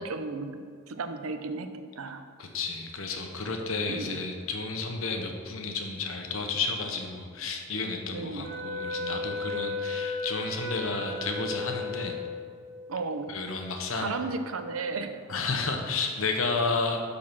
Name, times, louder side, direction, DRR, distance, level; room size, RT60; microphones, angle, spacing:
voice 1, 0.0-2.2 3.9-4.2 8.1-8.5 12.9-13.3 14.0-15.2, right 3 dB, 80° right, 9 dB, 0.7 m, -34 dB
voice 2, 2.4-12.2 13.3-14.1 15.3-17.0, left 4 dB, 75° left, 3 dB, 1.1 m, -31 dB
Wind instrument woodwind instrument, 8.4-12.7, left 3 dB, 50° right, 2.5 m, -34 dB
12.0 x 4.2 x 6.0 m, 2.1 s
head